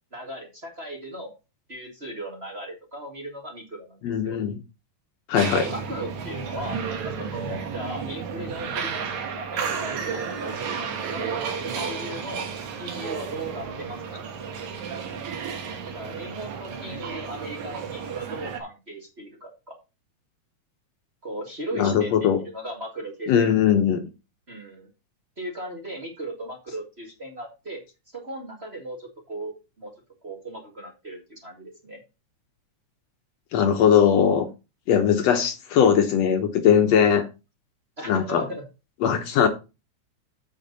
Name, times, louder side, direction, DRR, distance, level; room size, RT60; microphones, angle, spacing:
voice 1, 0.1-1.3 1.7-4.4 5.3-12.5 12.8-14.0 15.9-19.8 21.2-23.5 24.5-24.9 25.4-27.8 28.1-29.9 30.2-32.0 38.0-38.6, right 1 dB, 25° right, 1.9 m, -37 dB
voice 2, 4.0-4.6 5.3-5.6 21.7-22.4 23.3-24.0 33.5-34.5 34.9-37.2 38.1-38.4 39.0-39.5, left 8 dB, 70° left, 1.9 m, -20 dB
sound 1, 5.4-18.6, right 6 dB, 75° right, 2.7 m, -32 dB
7.9 x 7.4 x 4.0 m
omnidirectional pair, 3.4 m